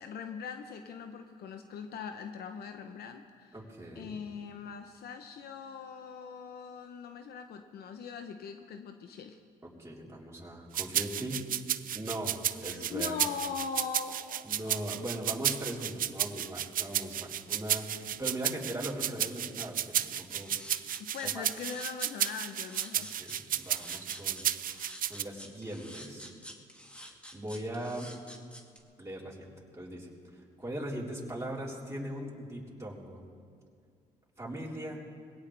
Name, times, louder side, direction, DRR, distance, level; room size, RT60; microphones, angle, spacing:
voice 1, 0.0-3.5 4.0-9.4 12.7-14.9 21.0-23.1, left 6 dB, 70° left, 6 dB, 0.9 m, -41 dB
voice 2, 3.5-4.1 9.8-11.4 11.9-13.1 14.4-20.6 21.2-21.5 22.9-24.4 25.1-26.3 27.0-28.1 29.0-29.5 29.7-33.2 34.4-35.1, right 1 dB, 15° right, -4 dB, 4.0 m, -40 dB
sound 1, 10.7-25.2, right 10 dB, 55° right, 0.6 m, -32 dB
sound 2, 20.4-28.8, equal, 5° left, 2.1 m, -48 dB
21.5 x 17.5 x 3.5 m, 2.2 s
supercardioid pair, 65°, 17 cm